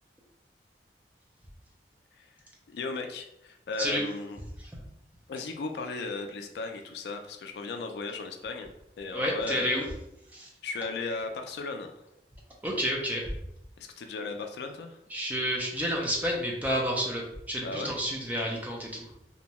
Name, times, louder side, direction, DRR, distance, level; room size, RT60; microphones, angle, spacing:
voice 1, 2.7-4.4 5.3-8.7 9.0-9.9 10.6-11.9 13.8-15.0 17.6-17.9, left 3 dB, 65° left, 5 dB, 0.3 m, -36 dB
voice 2, 9.1-9.8 10.3-10.5 12.6-13.2 15.1-19.1, equal, 10° right, -2 dB, 0.5 m, -30 dB
2.6 x 2.1 x 2.9 m, 0.80 s
head